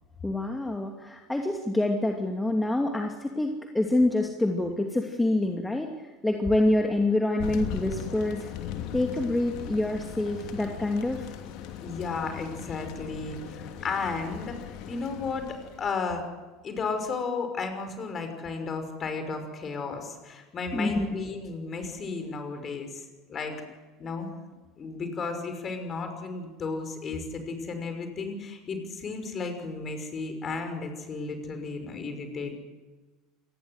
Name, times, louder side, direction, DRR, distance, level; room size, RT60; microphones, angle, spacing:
voice 1, 0.2-5.9 6.2-8.5 8.9-11.3 20.7-21.1, left 1 dB, 10° left, 3 dB, 2.6 m, -26 dB
Thunder, 7.4-15.9, left 10 dB, 55° left, 2.8 m, -39 dB
voice 2, 11.8-15.5 15.8-16.2 16.6-23.0 23.3-23.6 24.0-24.3 24.8-32.6, left 4 dB, 35° left, 7 dB, 5.8 m, -34 dB
27.5 x 20.0 x 8.1 m, 1.2 s
figure-of-eight pair, 70°, 0 cm